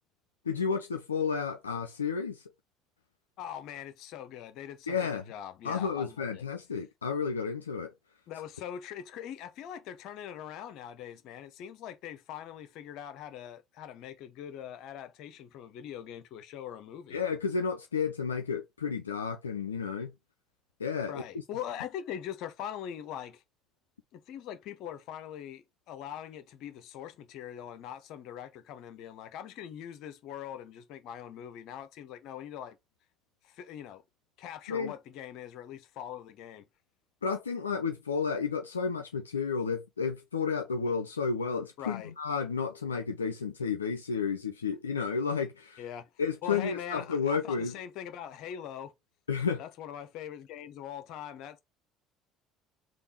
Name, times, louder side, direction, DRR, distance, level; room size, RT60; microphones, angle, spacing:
voice 1, 0.5-2.4 4.9-5.3 5.6-7.9 17.1-20.1 20.8-21.2 34.7-34.9 37.2-45.8 46.2-47.7 49.3-49.6, left 5 dB, 90° left, 0.3 m, -32 dB
voice 2, 3.4-6.4 8.3-17.2 21.1-23.4 24.1-32.8 33.4-34.0 34.4-36.7 41.8-42.1 45.8-46.1 46.4-48.9 49.6-51.6, left 10 dB, 60° left, 0.7 m, -42 dB
3.5 x 2.4 x 4.3 m
hypercardioid pair, 60°, 0 cm